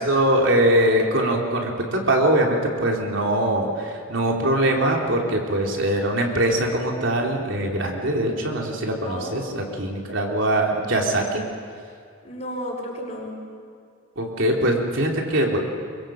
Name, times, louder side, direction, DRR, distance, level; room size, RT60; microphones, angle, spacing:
voice 1, 0.0-11.4 14.2-15.6, right 1 dB, 70° right, 0 dB, 3.5 m, -22 dB
voice 2, 9.0-10.0 12.2-13.4, equal, 35° left, -1 dB, 5.4 m, -34 dB
23.5 x 23.5 x 7.7 m, 2.2 s
head